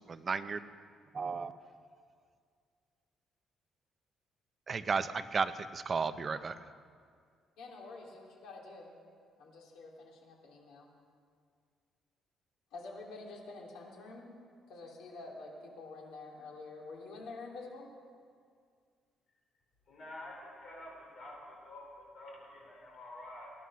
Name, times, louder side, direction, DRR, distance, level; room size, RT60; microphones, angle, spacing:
voice 1, 0.1-0.6 1.1-1.5 4.7-6.5, right 5 dB, 25° right, 11 dB, 0.5 m, -33 dB
voice 2, 7.6-8.9 9.4-10.9 12.7-14.4 14.7-17.9, left 3 dB, 90° left, -1 dB, 3.0 m, -48 dB
voice 3, 19.9-23.5, left 1 dB, 40° left, -2 dB, 4.6 m, -48 dB
18.5 x 11.5 x 6.2 m, 2.1 s
cardioid pair, 180°, 0 cm